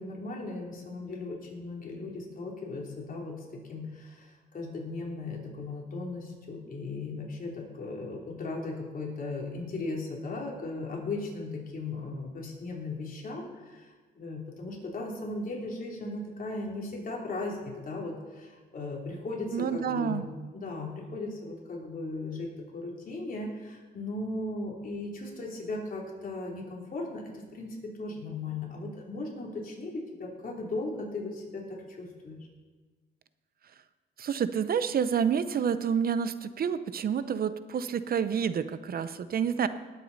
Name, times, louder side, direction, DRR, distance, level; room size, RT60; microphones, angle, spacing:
voice 1, 0.0-13.5 13.7-13.9 14.1-17.6 17.8-20.2 20.5-32.5, left 2 dB, 45° left, -2 dB, 3.3 m, -37 dB
voice 2, 19.5-20.3 34.2-39.7, right 7 dB, 50° right, 13 dB, 0.7 m, -28 dB
19.0 x 8.3 x 4.1 m, 1.4 s
cardioid pair, 90°, 20 cm